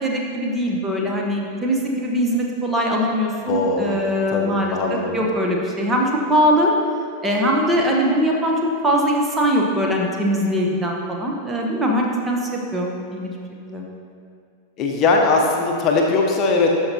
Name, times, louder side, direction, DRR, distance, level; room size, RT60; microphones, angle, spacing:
voice 1, 0.0-6.7 7.2-13.3 13.7-13.8, equal, 15° right, -1 dB, 1.1 m, -21 dB
voice 2, 3.5-4.0 4.3-5.2 14.8-16.7, left 3 dB, 35° left, 0 dB, 0.9 m, -20 dB
12.5 x 5.4 x 2.9 m, 2.3 s
figure-of-eight pair, 90°, 0 cm